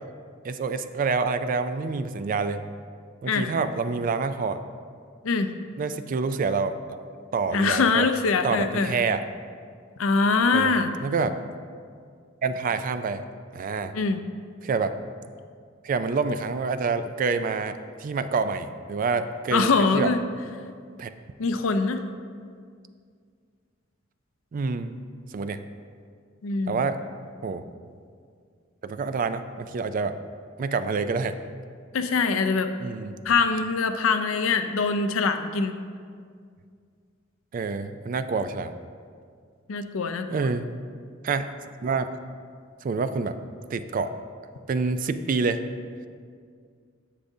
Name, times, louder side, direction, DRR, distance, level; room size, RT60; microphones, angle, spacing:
voice 1, 0.4-2.7 3.2-4.6 5.8-7.0 7.3-8.1 8.4-9.2 10.5-10.7 11.0-11.4 12.4-13.3 13.5-13.9 14.6-14.9 15.8-20.1 21.0-21.1 24.5-25.0 25.3-25.6 26.7-27.0 27.4-27.6 28.8-30.2 30.6-31.3 32.8-33.2 37.5-38.7 40.3-40.7 41.2-41.5 41.8-42.1 42.8-43.4 43.7-44.1 44.7-45.6, right 4 dB, 40° right, 11 dB, 0.3 m, -27 dB
voice 2, 7.5-8.9 10.0-10.9 13.9-14.2 19.5-20.2 21.4-22.0 26.4-26.8 31.9-32.7 33.2-35.8 39.7-40.5, left 4 dB, 80° left, 8 dB, 0.5 m, -23 dB
10.0 x 7.2 x 2.7 m, 2.1 s
head